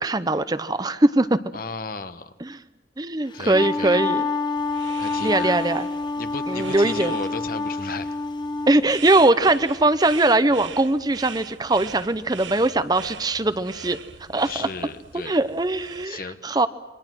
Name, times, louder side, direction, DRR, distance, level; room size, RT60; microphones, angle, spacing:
voice 1, 0.0-1.4 2.4-2.6 3.0-4.3 5.2-5.9 6.5-7.1 8.7-14.0 14.3-14.7 15.2-16.7, right 2 dB, 20° right, 12 dB, 0.7 m, -21 dB
voice 2, 1.5-2.3 3.3-4.0 5.0-5.6 6.2-8.2 14.4-15.4 16.0-16.6, left 4 dB, 50° left, 11 dB, 1.1 m, -34 dB
Wind instrument woodwind instrument, 3.3-8.8, left 3 dB, 25° left, 0.9 m, -27 dB
sound 1, 4.6-16.1, right 6 dB, 90° right, 1.1 m, -40 dB
28.5 x 24.0 x 6.2 m, 1.1 s
head